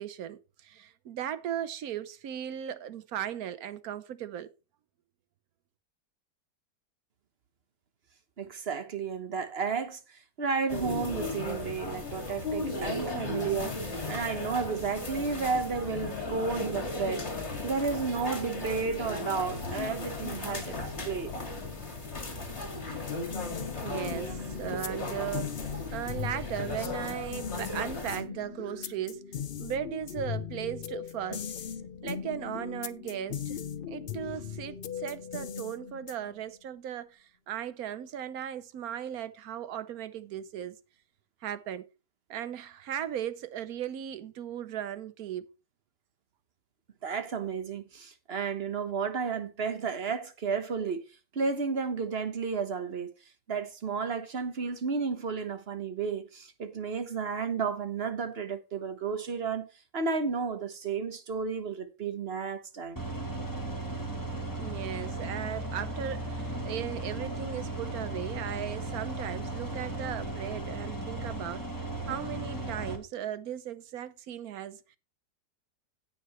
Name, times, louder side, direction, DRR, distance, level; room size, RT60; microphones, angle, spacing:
voice 1, 0.0-4.5 23.8-29.2 29.6-31.5 32.0-33.6 33.9-40.8 41.4-41.9 42.3-45.5 64.6-71.6 72.1-74.8, right 10 dB, 65° right, 1.2 m, -37 dB
voice 2, 8.4-20.8 21.0-21.3 47.0-51.0 51.3-53.1 53.5-59.7 59.9-63.0, right 5 dB, 40° right, 1.3 m, -32 dB
sound 1, 10.7-28.2, left 2 dB, 40° left, 2.4 m, -36 dB
sound 2, 23.0-36.4, left 8 dB, 70° left, 0.5 m, -39 dB
sound 3, 63.0-73.0, right 2 dB, 10° left, 1.5 m, -36 dB
17.0 x 5.8 x 3.1 m
omnidirectional pair, 1.8 m